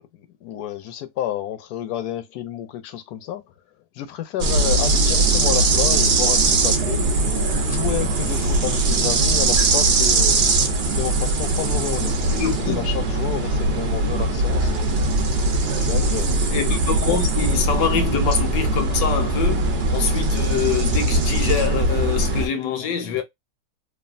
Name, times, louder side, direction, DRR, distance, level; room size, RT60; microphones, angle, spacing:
voice 1, 0.1-3.4 3.9-7.1 7.7-10.5 10.9-12.5 12.8-15.0 15.8-16.4, left 11 dB, 70° left, 1.0 m, -30 dB
sound 1, 4.4-22.5, right 2 dB, 60° right, 0.6 m, -20 dB
voice 2, 12.3-12.9 16.3-23.2, left 7 dB, 90° left, 1.4 m, -25 dB
3.2 x 2.3 x 2.4 m
omnidirectional pair, 1.9 m